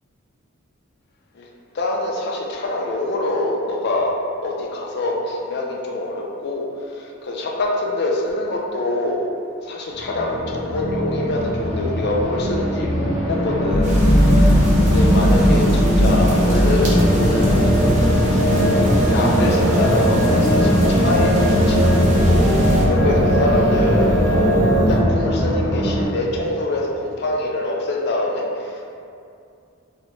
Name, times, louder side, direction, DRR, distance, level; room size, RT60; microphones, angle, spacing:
voice 1, 1.7-4.1 4.4-9.3 9.6-17.8 18.7-28.8, left 2 dB, 50° left, -1 dB, 0.4 m, -25 dB
sound 1, 9.9-26.1, equal, 10° left, 1.0 m, -22 dB
sound 2, 13.7-25.0, equal, 65° right, 0.9 m, -18 dB
sound 3, 13.8-22.8, right 1 dB, 35° right, 0.5 m, -31 dB
2.8 x 2.1 x 3.0 m, 2.4 s
head